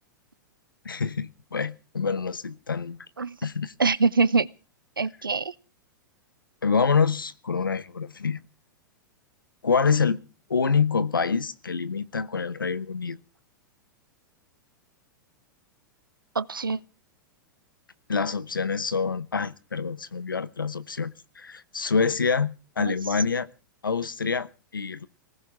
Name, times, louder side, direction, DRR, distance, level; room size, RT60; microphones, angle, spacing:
voice 1, 0.8-3.0 3.4-3.7 6.6-8.4 9.6-10.2 10.5-13.2 18.1-23.5 23.8-25.1, left 5 dB, 85° left, 1.1 m, -26 dB
voice 2, 3.8-4.5 5.0-5.5 16.3-16.8 22.8-22.9, right 4 dB, 90° right, 0.9 m, -24 dB
20.5 x 18.0 x 3.6 m
figure-of-eight pair, 100°, 11 cm